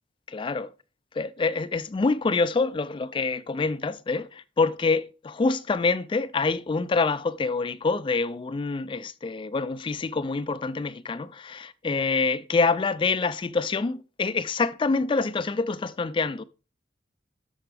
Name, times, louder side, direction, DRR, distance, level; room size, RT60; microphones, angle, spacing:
voice 1, 0.3-0.7 1.2-16.4, left 4 dB, 25° left, 0.3 m, -26 dB
12.5 x 4.5 x 3.3 m
head